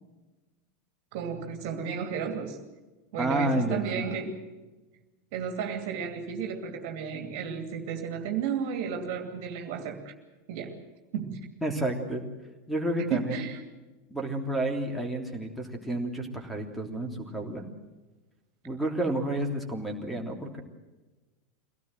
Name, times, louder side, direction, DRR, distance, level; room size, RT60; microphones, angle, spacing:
voice 1, 1.1-2.6 3.1-4.4 5.3-10.1 10.5-10.8 11.1-11.4 13.1-13.6, right 7 dB, 50° right, 5 dB, 2.6 m, -33 dB
voice 2, 3.2-4.1 11.6-12.2 12.7-13.4 14.1-17.6 18.6-20.6, right 1 dB, ahead, 4 dB, 3.2 m, -30 dB
24.0 x 18.0 x 7.8 m, 1.2 s
figure-of-eight pair, 85°, 0 cm